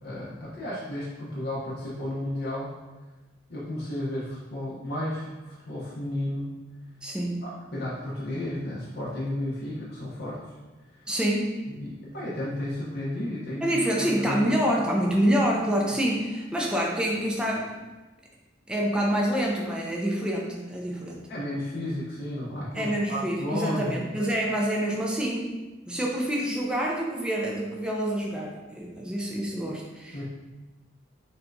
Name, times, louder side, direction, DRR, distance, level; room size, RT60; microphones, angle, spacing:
voice 1, 0.0-2.7 3.5-6.6 7.4-10.4 11.7-13.7 14.2-14.7 21.3-24.1 30.1-30.2, left 1 dB, 55° left, -8 dB, 0.8 m, -33 dB
voice 2, 7.0-7.5 11.1-11.6 13.6-17.8 18.7-21.3 22.7-25.6 25.9-30.2, equal, 5° right, -2 dB, 0.4 m, -27 dB
6.4 x 2.3 x 2.6 m, 1.2 s
head